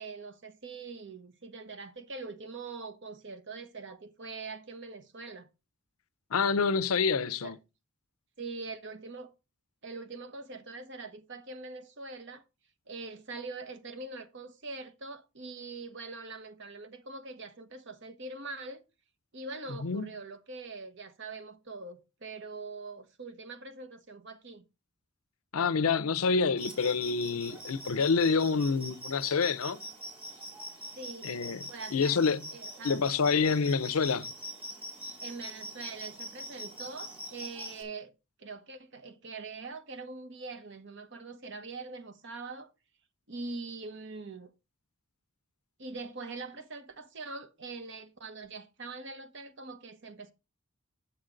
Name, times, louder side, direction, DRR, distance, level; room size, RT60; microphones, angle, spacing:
voice 1, 0.0-5.5 7.4-7.5 8.4-9.3 9.8-12.4 12.9-18.8 19.3-24.6 31.0-31.3 31.7-33.0 35.2-38.1 38.4-42.7 43.3-44.5 45.8-50.3, right 3 dB, 55° right, 1.0 m, -43 dB
voice 2, 6.3-7.5 19.8-20.1 25.5-29.9 31.2-31.6 31.9-32.4 32.8-34.3, left 5 dB, 80° left, 0.6 m, -27 dB
sound 1, 26.6-37.8, equal, 25° right, 2.6 m, -44 dB
8.7 x 7.1 x 3.8 m
head